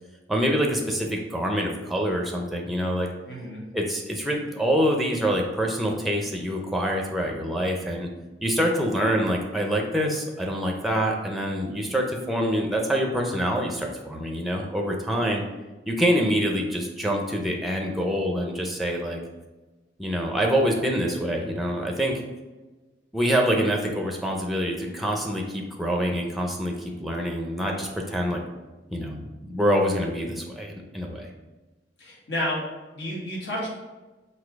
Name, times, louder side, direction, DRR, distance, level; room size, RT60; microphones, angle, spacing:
voice 1, 0.3-3.1 3.7-8.1 8.4-15.4 15.9-19.2 20.0-22.2 23.1-28.4 28.9-31.3, equal, ahead, 1 dB, 0.5 m, -26 dB
voice 2, 3.2-3.6 32.0-32.6 32.9-33.7, left 1 dB, 80° left, -4 dB, 1.5 m, -30 dB
4.1 x 2.7 x 4.5 m, 1.2 s
head